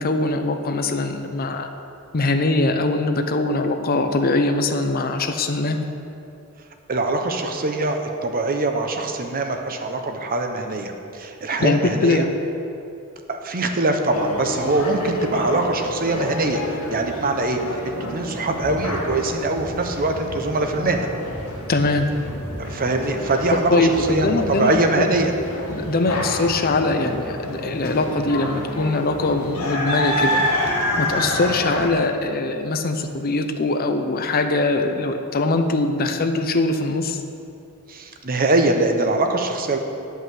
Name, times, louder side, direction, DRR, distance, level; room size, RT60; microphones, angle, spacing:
voice 1, 0.0-1.7 2.1-5.8 11.6-12.3 21.7-22.1 23.7-25.1 25.7-30.4 31.0-37.2, left 2 dB, 45° left, 7 dB, 0.6 m, -22 dB
voice 2, 6.9-12.3 13.3-17.6 17.8-21.1 22.6-25.3 37.9-39.8, right 2 dB, 40° right, 5 dB, 0.8 m, -23 dB
sound 1, 14.1-31.9, left 1 dB, 70° left, 1.8 m, -28 dB
9.9 x 5.7 x 7.5 m, 2.7 s
head